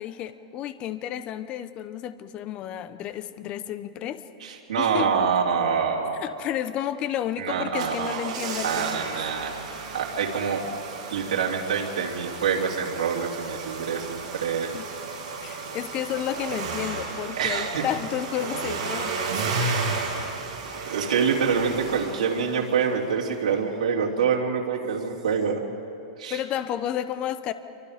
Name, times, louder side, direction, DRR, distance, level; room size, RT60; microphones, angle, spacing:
voice 1, 0.0-4.2 4.8-5.1 6.2-9.1 14.7-14.9 15.4-19.3 26.3-27.5, left 11 dB, 25° left, 12 dB, 0.9 m, -31 dB
voice 2, 4.4-6.1 7.4-8.3 8.6-10.6 11.1-14.7 17.4-17.8 20.8-25.6 26.2-26.4, right 6 dB, 85° right, -2 dB, 3.0 m, -26 dB
sound 1, 7.5-23.0 23.2-23.3, right 4 dB, 55° right, 7.7 m, -33 dB
27.5 x 24.5 x 5.1 m, 2.7 s
supercardioid pair, 160°, 4 cm